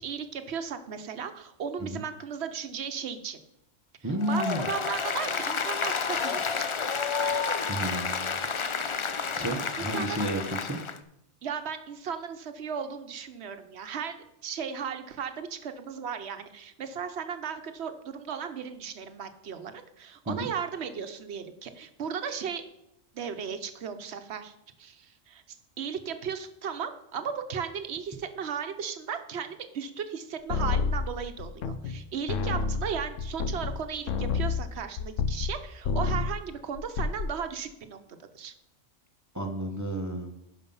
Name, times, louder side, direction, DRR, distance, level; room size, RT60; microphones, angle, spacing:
voice 1, 0.0-3.4 4.0-6.7 9.8-10.3 11.4-22.6 23.1-38.5, right 7 dB, 60° right, 9 dB, 1.1 m, -36 dB
voice 2, 4.0-4.6 7.7-8.4 9.3-10.8 20.3-20.5 39.3-40.3, right 1 dB, 15° right, 4 dB, 0.8 m, -32 dB
Applause, 4.2-11.0, left 5 dB, 50° left, 0.3 m, -30 dB
sound 1, 30.5-32.0 32.3-35.6 35.8-36.4 36.8-37.3, left 4 dB, 80° left, 1.1 m, -29 dB
11.5 x 5.2 x 5.5 m, 0.82 s
omnidirectional pair, 1.3 m